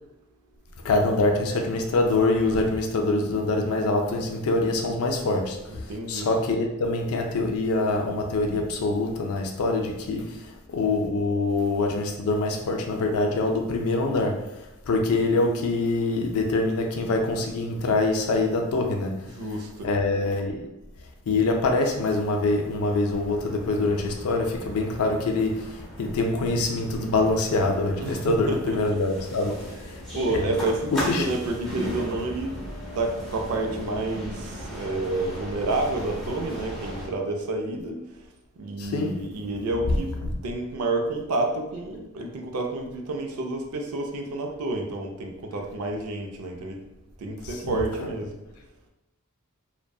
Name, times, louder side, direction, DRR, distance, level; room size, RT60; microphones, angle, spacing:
voice 1, 0.9-5.6 6.1-10.3 10.7-14.4 14.9-19.1 19.8-20.6 21.3-25.5 26.0-29.6 30.1-30.5 30.9-31.3 38.8-39.1 47.6-48.1, left 2 dB, 80° left, 3 dB, 0.4 m, -24 dB
voice 2, 5.7-6.3 19.2-19.9 28.0-29.0 29.7-29.8 30.1-32.5 33.0-38.1 38.6-40.1 40.4-46.8 47.2-48.3, right 2 dB, 90° right, 3 dB, 0.4 m, -29 dB
sound 1, 22.1-37.1, equal, ahead, 0.6 m, -37 dB
2.6 x 2.1 x 2.2 m, 0.93 s
head